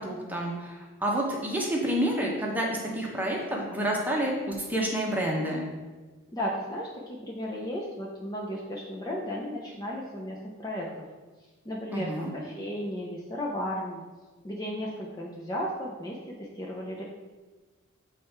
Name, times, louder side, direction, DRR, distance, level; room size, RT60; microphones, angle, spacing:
voice 1, 0.0-2.7 2.9-5.7 11.9-12.3, right 1 dB, 10° right, -2 dB, 1.0 m, -29 dB
voice 2, 6.3-11.0 11.6-14.0 14.4-17.0, equal, 20° left, -3 dB, 0.6 m, -34 dB
7.4 x 3.3 x 4.4 m, 1.3 s
head